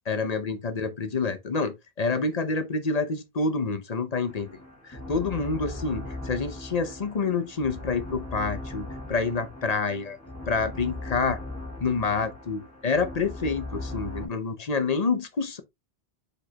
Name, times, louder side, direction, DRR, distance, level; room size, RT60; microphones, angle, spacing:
voice 1, 0.1-4.5 4.8-10.2 10.5-11.4 11.8-15.6, left 4 dB, 40° left, 0.9 m, -28 dB
sound 1, 4.3-14.3, left 2 dB, 15° left, 2.0 m, -39 dB
6.3 x 5.2 x 2.8 m
omnidirectional pair, 1.1 m